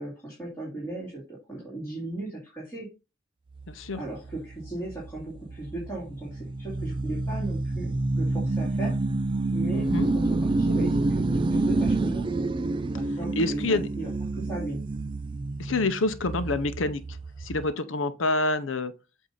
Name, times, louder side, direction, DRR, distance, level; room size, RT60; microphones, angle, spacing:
voice 1, 0.0-2.9 3.9-8.9 9.5-9.9 10.1-12.3 12.9-14.8, right 2 dB, 15° left, 2.4 m, -37 dB
sound 1, 3.6-17.7, right 2 dB, 25° right, 0.3 m, -28 dB
voice 2, 3.7-4.0 9.7-10.1 13.4-13.9 15.6-17.0 17.4-18.9, left 2 dB, 80° left, 0.7 m, -27 dB
8.2 x 2.8 x 5.5 m
head